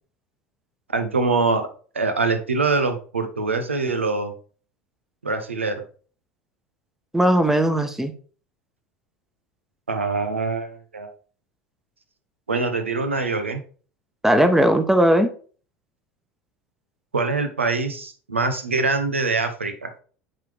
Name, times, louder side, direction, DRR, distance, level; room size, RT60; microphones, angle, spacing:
voice 1, 0.9-1.7 1.9-4.3 5.2-5.8 9.9-11.1 12.5-13.6 17.1-19.9, right 3 dB, 85° right, 8 dB, 0.8 m, -24 dB
voice 2, 7.1-8.1 14.2-15.3, right 1 dB, 5° right, 9 dB, 1.0 m, -18 dB
8.8 x 3.9 x 3.4 m, 0.41 s
figure-of-eight pair, 75°, 6 cm